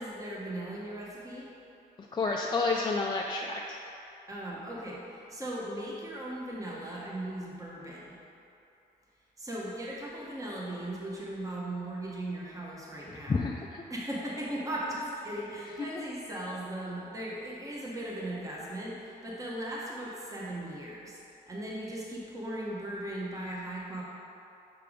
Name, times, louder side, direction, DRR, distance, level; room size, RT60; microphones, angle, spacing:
voice 1, 0.0-1.5 4.3-8.2 9.4-13.4 13.9-21.2 21.5-24.0, right 1 dB, 20° right, -5 dB, 1.1 m, -38 dB
voice 2, 2.1-3.6 13.3-13.8, left 3 dB, 25° left, -1 dB, 0.4 m, -29 dB
6.0 x 3.4 x 4.9 m, 2.8 s
cardioid pair, 85°, 18 cm